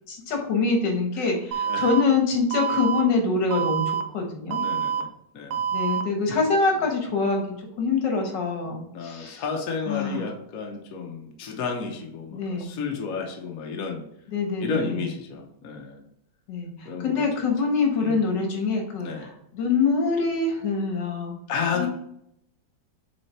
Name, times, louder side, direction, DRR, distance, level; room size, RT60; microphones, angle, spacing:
voice 1, 0.1-4.6 5.7-9.4 9.9-10.3 12.3-12.8 14.3-15.0 16.5-19.3 19.5-21.3 21.7-21.9, left 4 dB, 75° left, 3 dB, 1.9 m, -25 dB
Alarm, 1.5-2.0 2.5-3.0 3.5-4.0 4.5-5.0 5.5-6.0, right 7 dB, 70° right, 1.1 m, -26 dB
voice 2, 4.5-5.1 5.3-5.6 8.9-14.0 14.6-16.0 16.8-17.3 18.0-18.2 19.0-19.3 21.5-21.9, left 5 dB, 55° left, 1 dB, 1.2 m, -32 dB
6.5 x 3.8 x 4.2 m, 0.76 s
omnidirectional pair, 1.9 m